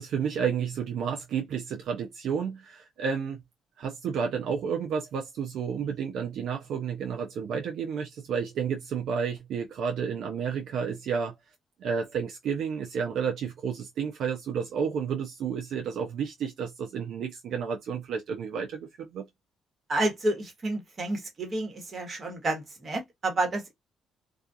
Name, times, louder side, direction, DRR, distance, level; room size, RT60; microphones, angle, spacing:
voice 1, 0.0-3.4 3.8-11.3 11.8-19.3, right 6 dB, 75° right, 0.4 m, -31 dB
voice 2, 19.9-23.7, right 2 dB, 40° right, 1.2 m, -30 dB
2.3 x 2.3 x 2.6 m
cardioid pair, 90°, 0 cm